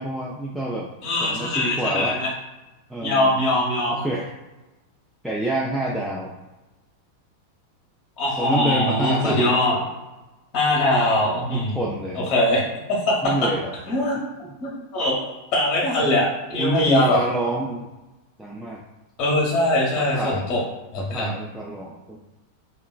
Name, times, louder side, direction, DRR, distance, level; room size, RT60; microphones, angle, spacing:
voice 1, 0.0-0.9 1.2-2.2 2.9-3.4 3.9-4.3 5.2-6.3 8.4-9.6 11.5-12.3 13.2-13.7 14.4-14.6 16.6-17.9 18.4-18.8 20.0-20.5 21.0-22.2, right 1 dB, ahead, -5 dB, 0.3 m, -27 dB
voice 2, 1.0-2.3 3.0-4.0 8.2-9.8 10.5-11.8 12.3-12.6 13.1-13.2 13.9-14.2 14.6-17.2 19.2-20.6 20.9-21.3, left 1 dB, 35° left, -3 dB, 0.8 m, -22 dB
2.9 x 2.3 x 2.3 m, 1.1 s
figure-of-eight pair, 90°, 0 cm